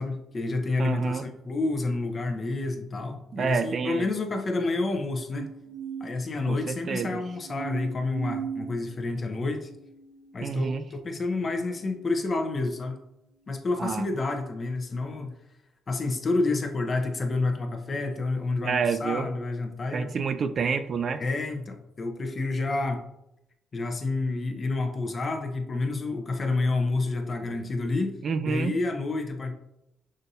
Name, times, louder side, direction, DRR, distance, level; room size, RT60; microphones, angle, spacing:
voice 1, 0.0-5.5 6.0-9.7 10.3-13.0 13.5-15.3 15.9-20.1 21.1-23.0 23.7-28.2 28.5-29.5, left 3 dB, 40° left, 5 dB, 0.7 m, -29 dB
voice 2, 0.8-1.3 3.3-4.1 6.5-7.2 10.4-10.8 13.8-14.1 18.6-19.3 19.9-21.2 28.2-28.8, right 5 dB, 50° right, 10 dB, 0.3 m, -28 dB
sound 1, 5.3-12.7 13.4-13.9, right 7 dB, 90° right, 0.8 m, -41 dB
6.2 x 2.6 x 2.7 m, 0.85 s
cardioid pair, 90°, 0 cm